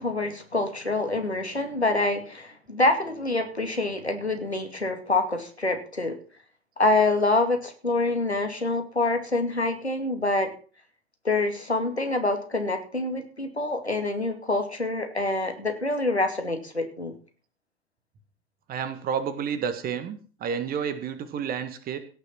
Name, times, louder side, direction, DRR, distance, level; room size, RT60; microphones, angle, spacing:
voice 1, 0.0-6.1 6.8-10.5 11.2-17.1, left 2 dB, 85° left, 6 dB, 2.3 m, -26 dB
voice 2, 18.7-22.0, right 7 dB, 30° right, 10 dB, 1.8 m, -30 dB
17.0 x 6.7 x 6.0 m, 0.40 s
figure-of-eight pair, 90°, 32 cm